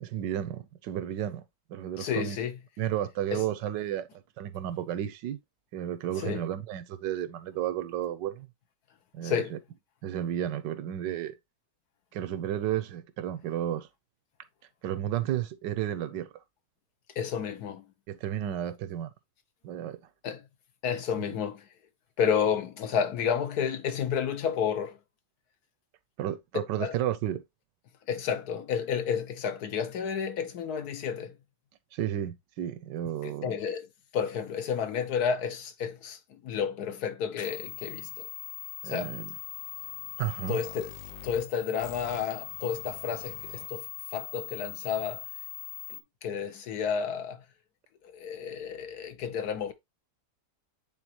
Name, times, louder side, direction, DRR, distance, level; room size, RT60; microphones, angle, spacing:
voice 1, 0.0-1.4 1.7-2.4 2.8-4.1 4.4-5.4 5.7-8.5 9.1-9.6 10.0-11.3 12.1-13.9 14.8-16.3 18.1-19.1 19.6-20.0 26.2-27.4 31.9-33.6 38.8-39.3 40.2-40.6, right 11 dB, 85° right, 1.4 m, -32 dB
voice 2, 2.0-2.5 3.3-3.4 6.1-6.4 9.2-9.5 17.2-17.8 20.2-20.4 20.8-21.6 22.2-25.0 26.8-26.9 28.1-31.3 33.2-33.9 34.1-38.3 38.8-39.1 40.5-40.9 41.2-45.2 45.9-47.4 48.0-49.7, left 7 dB, 65° left, 1.3 m, -31 dB
sound 1, 37.4-46.0, left 17 dB, 85° left, 1.5 m, -41 dB
8.7 x 3.9 x 2.9 m
omnidirectional pair, 1.9 m